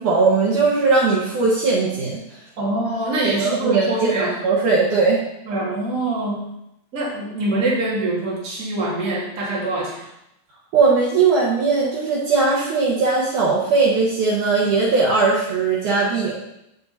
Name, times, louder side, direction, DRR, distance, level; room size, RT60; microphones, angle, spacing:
voice 1, 0.0-2.2 3.4-5.2 10.7-16.3, right 4 dB, 60° right, -5 dB, 2.5 m, -19 dB
voice 2, 2.6-4.4 5.5-6.5 6.9-10.1, right 2 dB, 25° right, -5 dB, 2.0 m, -24 dB
7.7 x 7.2 x 4.2 m, 0.81 s
omnidirectional pair, 4.7 m